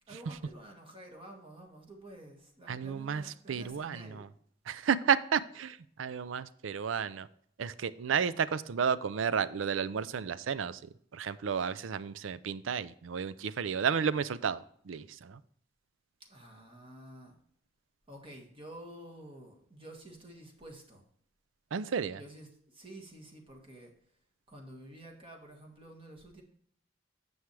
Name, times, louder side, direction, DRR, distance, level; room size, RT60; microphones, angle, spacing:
voice 1, 0.1-4.3 16.2-17.4 18.1-21.0 22.1-23.9 24.5-26.4, right 1 dB, 30° right, 1 dB, 1.7 m, -50 dB
voice 2, 2.7-3.2 3.5-4.3 4.7-7.3 7.6-10.8 11.1-15.4 21.7-22.2, right 7 dB, 75° right, 16 dB, 0.4 m, -32 dB
9.5 x 7.1 x 3.3 m, 0.63 s
head